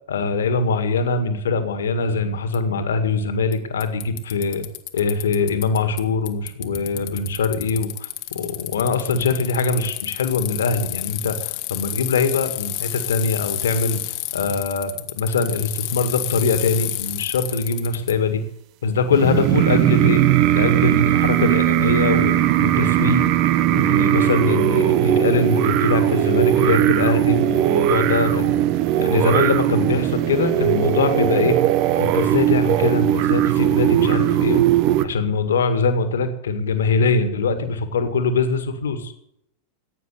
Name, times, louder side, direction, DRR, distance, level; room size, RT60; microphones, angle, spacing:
voice 1, 0.1-4.7 4.9-14.1 14.3-18.4 18.8-20.2 20.5-23.3 23.7-28.7 29.0-31.6 32.0-34.7 35.0-39.1, left 4 dB, 65° left, 9 dB, 1.9 m, -22 dB
Bicycle, 2.5-2.6 3.5-3.6 3.8-6.0 6.3-18.1, left 18 dB, 45° left, 1.3 m, -30 dB
sound 1, 19.1-35.0, right 13 dB, 40° right, 0.9 m, -19 dB
15.5 x 9.3 x 8.4 m, 0.75 s
figure-of-eight pair, 90°, 0 cm